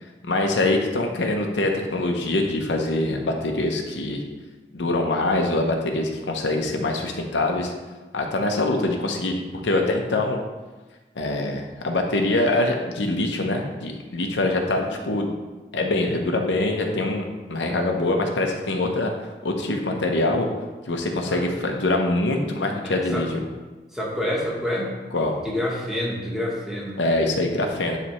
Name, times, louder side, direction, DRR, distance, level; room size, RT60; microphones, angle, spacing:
voice 1, 0.2-4.2 4.7-7.7 8.1-10.4 11.2-15.3 15.7-19.1 19.4-20.5 20.9-23.4 25.1-25.3 27.0-28.0, left 2 dB, 90° left, 2 dB, 0.8 m, -24 dB
voice 2, 22.8-23.3 23.9-25.0 25.4-27.0, left 1 dB, ahead, -4 dB, 1.1 m, -28 dB
9.9 x 3.3 x 3.1 m, 1.2 s
head